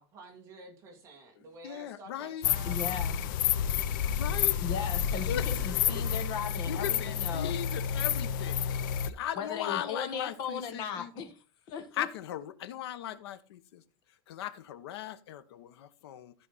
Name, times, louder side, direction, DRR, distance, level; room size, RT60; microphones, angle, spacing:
voice 1, 0.0-2.8, right 2 dB, 20° right, 2.4 m, -50 dB
voice 2, 1.4-2.5 4.2-4.6 5.3-6.1 6.7-11.1 11.9-13.8 14.3-16.3, left 11 dB, 85° left, 1.1 m, -38 dB
sound 1, 2.4-9.1, left 9 dB, 50° left, 0.7 m, -30 dB
voice 3, 2.6-3.2 4.6-7.5 9.4-11.4 11.7-12.1, left 7 dB, 30° left, 1.4 m, -37 dB
14.5 x 5.1 x 4.1 m
supercardioid pair, 180°, 13 cm